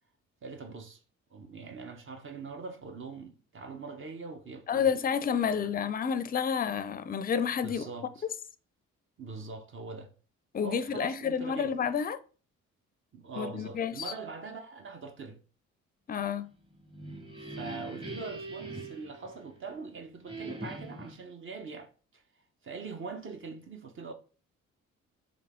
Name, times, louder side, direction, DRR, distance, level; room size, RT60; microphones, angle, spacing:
voice 1, 0.4-1.0 1.3-4.9 5.4-5.8 7.6-8.3 9.2-10.1 10.6-11.7 13.1-15.4 17.4-22.2 22.6-24.1, right 4 dB, 40° right, 0.7 m, -42 dB
voice 2, 4.7-7.8 10.5-12.2 13.4-14.0 16.1-16.5, left 7 dB, 30° left, 0.4 m, -30 dB
sound 1, 16.7-19.8 20.3-21.2, right 2 dB, 15° right, 1.0 m, -42 dB
3.5 x 2.8 x 3.5 m
supercardioid pair, 60°, 33 cm